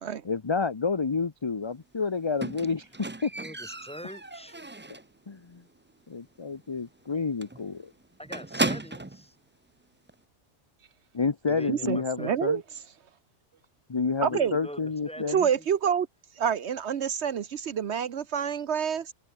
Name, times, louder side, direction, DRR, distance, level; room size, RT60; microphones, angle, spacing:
voice 1, 0.2-2.9 3.2-3.3 5.3-5.6 6.1-7.9 11.1-12.6 13.9-15.5, left 4 dB, 25° left, 0.8 m, -29 dB
Squeak, 2.4-5.2 5.5-5.9 6.2-6.3 6.7-6.8 7.0-7.2 7.4-9.2 10.1-10.2, right 2 dB, 15° right, 0.5 m, -34 dB
voice 2, 3.4-4.8 8.2-9.4 11.5-12.6 14.3-15.7, equal, 5° left, 3.1 m, -43 dB
voice 3, 11.7-12.6 14.2-14.6 15.3-16.1 16.4-19.1, right 8 dB, 70° right, 1.1 m, -27 dB
open air
omnidirectional pair, 1.2 m